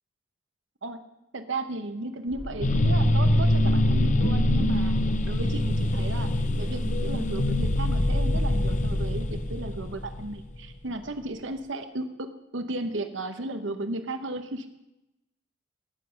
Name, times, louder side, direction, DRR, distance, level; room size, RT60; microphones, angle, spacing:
voice 1, 1.3-5.0 5.2-6.3 6.6-14.7, right 2 dB, 75° right, 8 dB, 1.0 m, -34 dB
sound 1, 2.3-7.4 7.6-7.9, equal, 55° left, 2.4 m, -43 dB
sound 2, 2.6-10.7, left 1 dB, 40° left, 0.8 m, -24 dB
18.0 x 7.9 x 5.8 m, 0.92 s
head